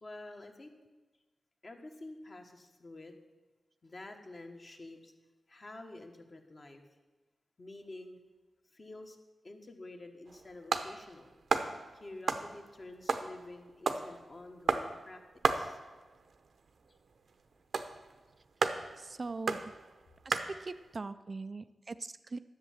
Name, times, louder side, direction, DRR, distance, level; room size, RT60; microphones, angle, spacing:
voice 1, 0.0-0.7 1.6-3.1 3.8-5.1 5.5-6.8 7.6-8.2 8.7-9.2 9.4-11.3 11.9-15.2 15.5-15.8, left 2 dB, 40° left, 3 dB, 1.4 m, -49 dB
sound 1, 10.3-20.9, right 4 dB, 70° right, 0.8 m, -35 dB
voice 2, 19.0-19.6 20.2-22.4, right 3 dB, 40° right, 12 dB, 0.4 m, -41 dB
11.0 x 7.5 x 7.3 m, 1.2 s
wide cardioid pair, 100°, 0 cm